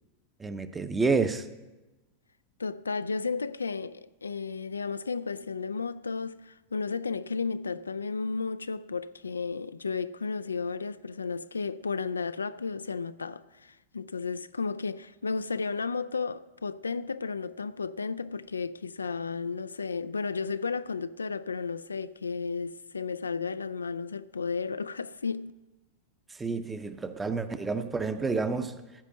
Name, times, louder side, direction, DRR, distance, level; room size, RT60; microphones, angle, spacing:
voice 1, 0.4-1.5 26.4-28.8, right 4 dB, 15° right, 0.8 m, -29 dB
voice 2, 2.6-25.5, left 4 dB, 75° left, 0.3 m, -33 dB
15.0 x 5.2 x 7.9 m
figure-of-eight pair, 90°, 0 cm